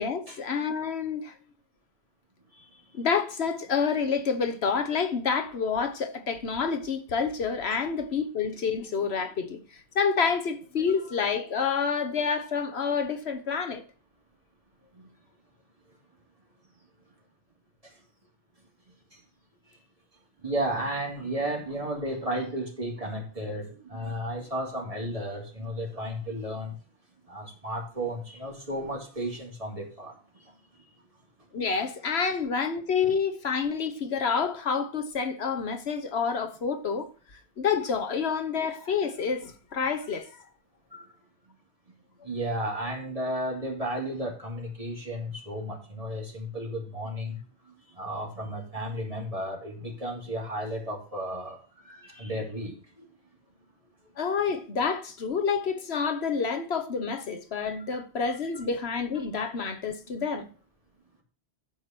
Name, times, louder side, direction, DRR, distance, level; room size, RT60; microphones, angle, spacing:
voice 1, 0.0-1.3 2.9-13.8 31.5-37.1 37.6-40.3 54.2-60.5, left 6 dB, 70° left, 1.3 m, -28 dB
voice 2, 2.5-2.8 7.7-7.8 11.0-11.1 14.9-15.1 17.8-17.9 19.1-19.2 19.7-19.8 20.4-26.8 27.3-30.9 40.9-41.1 41.5-41.6 41.9-42.0 42.2-53.1, right 1 dB, 35° right, 3.0 m, -34 dB
12.0 x 4.9 x 5.9 m
omnidirectional pair, 1.1 m